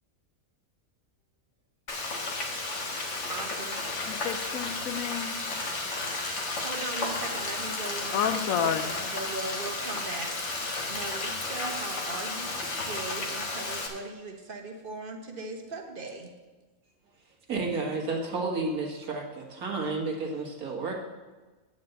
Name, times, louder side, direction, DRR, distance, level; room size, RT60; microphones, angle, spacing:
Frying (food), 1.9-13.9, left 3 dB, 55° left, 1.6 m, -33 dB
voice 1, 3.3-3.8 6.6-10.4 10.9-16.3, right 3 dB, 40° right, 3 dB, 1.3 m, -39 dB
voice 2, 4.1-5.3 8.1-8.9, left 8 dB, 70° left, 11 dB, 1.0 m, -30 dB
voice 3, 17.5-20.9, right 3 dB, 75° right, 0 dB, 2.1 m, -31 dB
9.3 x 5.2 x 7.9 m, 1.3 s
omnidirectional pair, 1.6 m